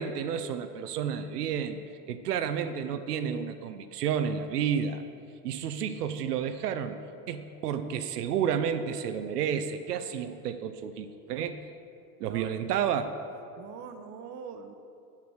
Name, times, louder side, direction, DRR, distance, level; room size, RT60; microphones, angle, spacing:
voice 1, 0.0-1.8 2.1-5.0 5.4-7.0 7.3-11.6 12.2-13.1, right 8 dB, 85° right, 9 dB, 0.5 m, -31 dB
voice 2, 12.2-12.5 13.6-14.7, right 6 dB, 35° right, 7 dB, 0.7 m, -43 dB
7.3 x 6.1 x 4.7 m, 2.6 s
hypercardioid pair, 90°, 46 cm